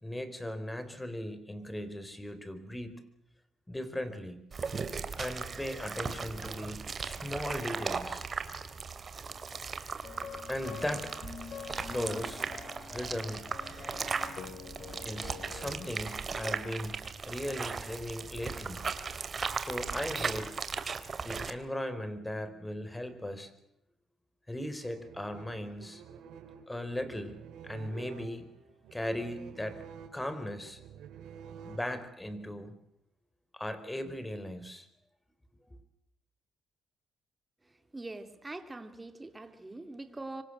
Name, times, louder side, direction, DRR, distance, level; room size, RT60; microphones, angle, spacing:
voice 1, 0.0-3.0 3.7-4.4 5.2-8.2 10.5-11.1 11.7-12.4 12.9-13.5 15.0-17.0 17.3-18.8 19.5-20.5 21.2-23.5 24.5-26.0 26.7-27.4 27.6-28.5 28.9-29.8 30.1-30.8 31.6-32.8 33.5-34.9, left 1 dB, 10° left, 11 dB, 4.3 m, -38 dB
sound 1, 4.5-21.5, right 5 dB, 40° right, 2.9 m, -37 dB
sound 2, 10.0-15.9, left 7 dB, 55° left, 3.5 m, -46 dB
sound 3, 24.8-32.3, right 7 dB, 85° right, 5.1 m, -50 dB
voice 2, 37.9-40.4, right 2 dB, 15° right, 8 dB, 3.4 m, -43 dB
26.0 x 24.5 x 7.8 m, 0.78 s
cardioid pair, 90°, 0 cm